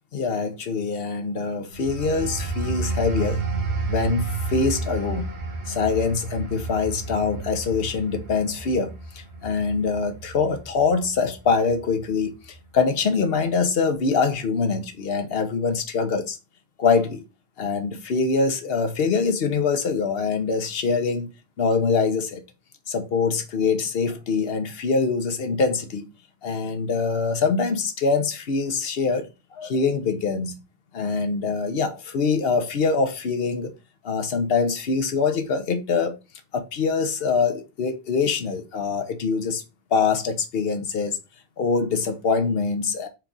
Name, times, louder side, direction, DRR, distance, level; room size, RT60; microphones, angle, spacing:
voice 1, 0.1-3.4 3.9-5.3 5.7-16.4 16.8-17.2 17.6-21.3 21.6-22.4 22.9-26.1 26.4-30.6 30.9-33.7 34.0-36.2 36.5-39.6 39.9-41.2 41.6-43.1, left 4 dB, 70° left, 1.0 m, -24 dB
sound 1, 1.7-12.1 12.5-12.8, right 3 dB, 85° right, 1.5 m, -31 dB
4.5 x 2.4 x 3.8 m
omnidirectional pair, 1.1 m